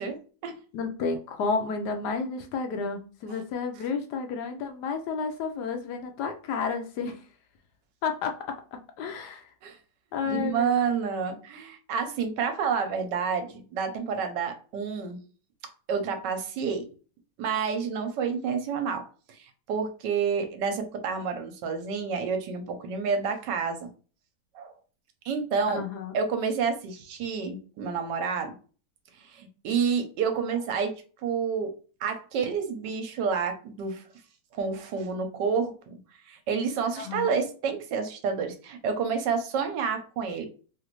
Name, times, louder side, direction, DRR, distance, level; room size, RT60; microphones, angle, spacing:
voice 1, 0.0-0.6 3.3-3.4 9.6-9.8 10.2-15.2 15.9-16.9 17.4-23.9 24.5-24.7 25.2-25.8 26.1-28.5 29.2-31.7 32.0-34.0 34.5-36.0 36.3-40.5, right 6 dB, 75° right, 1.2 m, -29 dB
voice 2, 0.7-7.2 8.0-9.5 10.1-10.7 25.7-26.2 37.0-37.3, left 5 dB, 75° left, 1.0 m, -31 dB
3.1 x 2.5 x 2.9 m
omnidirectional pair, 2.0 m